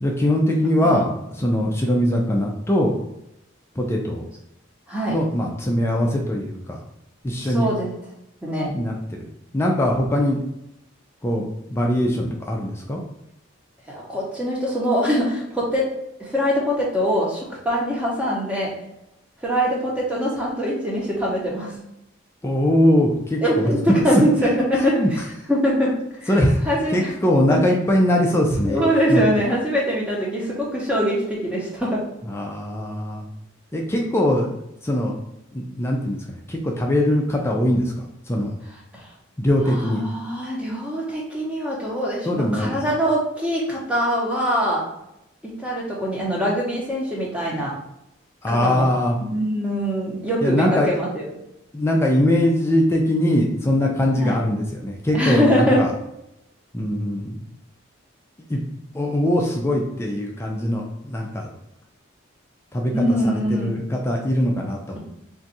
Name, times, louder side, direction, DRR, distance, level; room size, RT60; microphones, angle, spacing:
voice 1, 0.0-2.9 3.8-4.2 5.1-6.8 7.2-7.7 8.7-9.2 9.5-10.4 11.2-11.4 11.7-13.0 22.4-23.7 25.0-25.1 26.3-26.6 26.9-28.8 29.1-29.2 32.3-33.3 33.7-34.6 34.8-35.1 35.5-37.9 38.3-38.5 39.4-40.0 42.3-42.8 48.4-49.2 50.4-50.9 51.7-55.9 56.7-57.4 58.5-58.6 58.9-61.5 62.7-62.9 63.5-65.0, left 1 dB, 15° left, 0 dB, 0.3 m, -21 dB
voice 2, 7.4-7.9 8.4-8.7 13.9-15.9 16.2-18.7 19.4-21.7 23.4-25.0 25.5-25.9 26.2-26.3 26.6-27.1 28.6-32.0 39.8-44.8 45.4-47.7 48.5-48.9 49.2-51.2 54.1-54.4 55.1-55.8 62.9-63.8, equal, 5° right, -4 dB, 0.7 m, -23 dB
2.6 x 2.3 x 4.0 m, 0.84 s
head